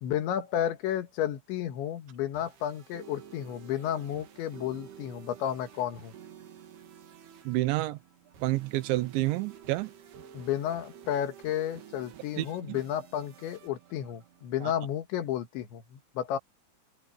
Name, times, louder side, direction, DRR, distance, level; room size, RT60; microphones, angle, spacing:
voice 1, 0.0-6.1 10.3-16.4, left 10 dB, 85° left, 4.0 m, -32 dB
sound 1, 2.1-14.9, right 9 dB, 65° right, 4.2 m, -51 dB
voice 2, 7.4-8.0 8.4-9.9 12.4-12.8 14.6-14.7, right 18 dB, 85° right, 3.3 m, -29 dB
open air
omnidirectional pair, 5.1 m